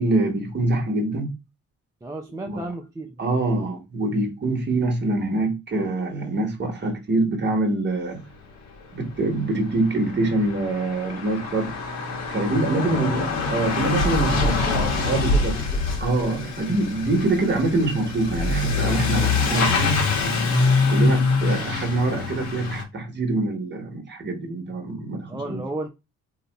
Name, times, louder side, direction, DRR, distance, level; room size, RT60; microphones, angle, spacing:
voice 1, 0.0-1.3 2.5-2.6 3.2-8.2 8.9-11.7 12.3-14.6 15.0-15.6 16.0-20.0 20.9-25.6, right 2 dB, 35° right, 1.2 m, -24 dB
voice 2, 2.0-3.2 12.8-13.1 14.2-15.8 16.4-16.5 25.3-25.9, right 2 dB, 10° right, 0.4 m, -34 dB
Truck / Accelerating revving vroom, 9.2-9.3 9.4-22.8, left 3 dB, 60° left, 1.0 m, -24 dB
2.7 x 2.2 x 3.9 m
cardioid pair, 90°, 30 cm